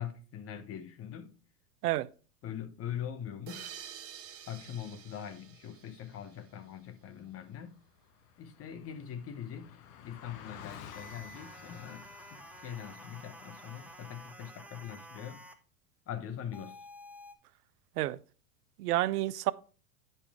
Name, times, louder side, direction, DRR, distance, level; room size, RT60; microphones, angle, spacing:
voice 1, 0.0-1.3 2.4-3.7 4.5-7.8 8.4-15.4 16.1-16.8, left 9 dB, 30° left, 0.9 m, -42 dB
sound 1, 3.5-6.8, right 9 dB, 30° right, 1.0 m, -49 dB
Car passing by, 7.2-7.3 7.5-14.3, left 8 dB, 65° left, 1.2 m, -52 dB
sound 2, 10.9-15.6 16.5-17.4, right 1 dB, 5° right, 0.7 m, -51 dB
voice 2, 18.8-19.5, right 15 dB, 85° right, 0.6 m, -29 dB
10.0 x 5.5 x 3.5 m
hypercardioid pair, 105°, 45 cm